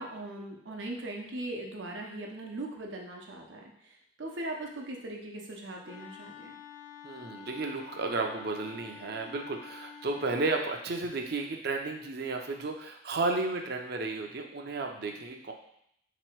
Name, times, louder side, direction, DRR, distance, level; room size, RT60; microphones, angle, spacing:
voice 1, 0.0-6.6, right 1 dB, 85° right, 0 dB, 0.8 m, -40 dB
Wind instrument woodwind instrument, 5.8-10.7, left 7 dB, 45° left, 0.3 m, -48 dB
voice 2, 7.0-15.5, right 3 dB, 60° right, 3 dB, 0.6 m, -33 dB
3.8 x 3.0 x 4.5 m, 0.73 s
head